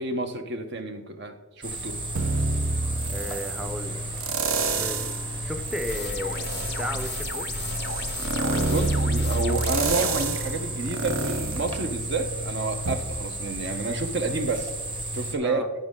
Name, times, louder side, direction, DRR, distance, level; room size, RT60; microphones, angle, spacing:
voice 1, 0.0-2.0 8.7-14.7 15.1-15.6, right 3 dB, 55° right, 7 dB, 0.9 m, -30 dB
sound 1, 1.6-15.4, right 1 dB, 25° right, 1.1 m, -33 dB
sound 2, 2.2-3.6 4.2-5.2 5.7-12.4 12.9-13.0, right 3 dB, 85° right, 0.8 m, -28 dB
voice 2, 3.1-4.0 4.7-7.5 15.4-15.7, left 1 dB, 5° right, 6 dB, 0.5 m, -34 dB
sound 3, 5.9-10.3, left 6 dB, 55° left, 0.4 m, -35 dB
14.0 x 5.3 x 3.7 m, 1.2 s
head